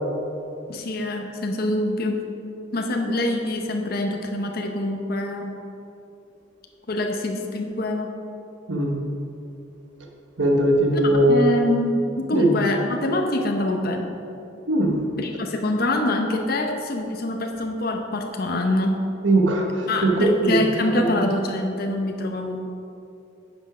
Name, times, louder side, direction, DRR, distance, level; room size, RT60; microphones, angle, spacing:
voice 1, 0.7-2.2 2.7-5.6 6.9-8.1 10.9-14.1 15.2-19.0 19.9-22.6, left 1 dB, 50° left, 3 dB, 0.8 m, -25 dB
voice 2, 10.4-11.5 12.3-12.5 14.7-15.0 19.2-20.6 20.9-21.1, right 1 dB, 75° right, 1 dB, 1.2 m, -19 dB
9.8 x 6.2 x 4.9 m, 2.7 s
head